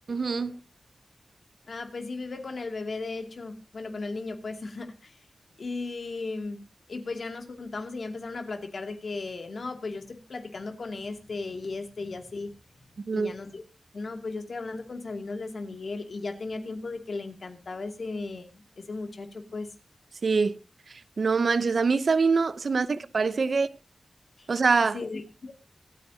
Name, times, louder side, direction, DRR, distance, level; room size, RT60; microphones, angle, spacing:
voice 1, 0.1-0.5 13.0-13.3 20.2-20.6 21.2-23.7 24.5-25.0, right 4 dB, 65° right, 0.8 m, -24 dB
voice 2, 1.7-5.2 5.6-6.6 6.9-12.5 13.1-13.6 13.9-19.7 24.9-25.5, left 3 dB, 65° left, 2.5 m, -36 dB
25.5 x 9.4 x 2.8 m
wide cardioid pair, 95°, 0 cm